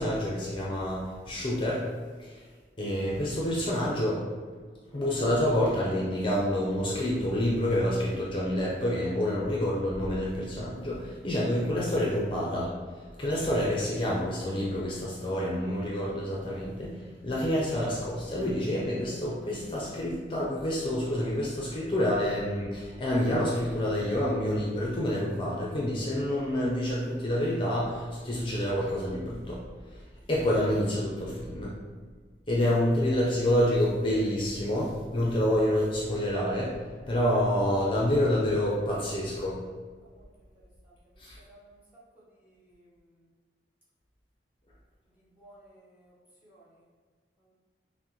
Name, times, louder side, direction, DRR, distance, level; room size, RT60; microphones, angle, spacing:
voice 1, 0.0-1.9 2.2-2.4 2.8-4.2 4.9-12.7 13.2-29.6 30.3-31.8 32.5-36.7 37.1-39.6 41.2-41.4, left 1 dB, 30° left, -5 dB, 0.5 m, -28 dB
voice 2, 41.5-41.8 42.5-42.9 45.4-46.1 46.4-46.7, right 1 dB, 10° right, -7 dB, 1.1 m, -56 dB
5.8 x 2.0 x 3.0 m, 1.5 s
head